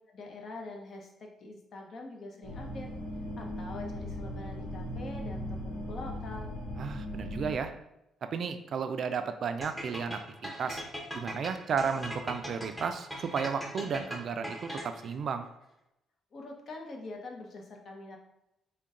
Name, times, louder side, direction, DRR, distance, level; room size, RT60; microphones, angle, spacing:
voice 1, 0.1-2.9 3.4-6.5 16.3-18.2, left 2 dB, 55° left, 1 dB, 0.7 m, -44 dB
sound 1, 2.4-7.6, equal, 90° left, 1.0 m, -38 dB
voice 2, 6.8-7.7 8.3-10.8 11.1-15.5, right 6 dB, 60° right, 8 dB, 0.3 m, -33 dB
sound 2, 9.6-15.1, equal, 10° left, 0.9 m, -40 dB
3.8 x 2.2 x 3.6 m, 0.86 s
cardioid pair, 90°, 0 cm